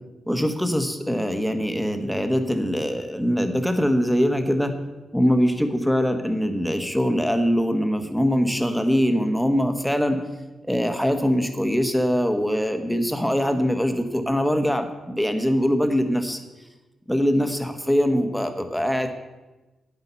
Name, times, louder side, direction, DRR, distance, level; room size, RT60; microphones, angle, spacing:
voice 1, 0.3-4.8 5.1-10.2 10.6-16.4 17.1-19.1, equal, ahead, 6 dB, 1.1 m, -22 dB
9.7 x 8.2 x 5.7 m, 1.1 s
cardioid pair, 95°, 0 cm